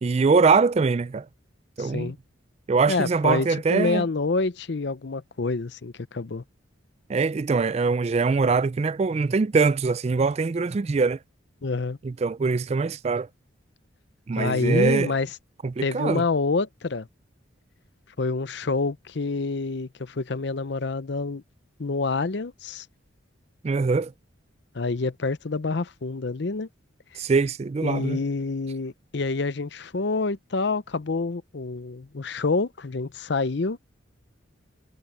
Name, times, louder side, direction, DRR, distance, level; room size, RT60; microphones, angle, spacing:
voice 1, 0.0-1.3 1.8-2.1 2.7-4.1 7.1-11.2 12.0-13.3 14.3-15.1 15.6-16.2 23.6-24.1 27.2-28.2, right 4 dB, 30° right, 0.3 m, -23 dB
voice 2, 1.8-2.2 2.9-6.4 11.6-12.0 14.4-15.3 15.8-17.1 18.2-21.4 21.8-22.9 24.7-26.7 27.8-33.8, left 3 dB, 55° left, 0.6 m, -27 dB
head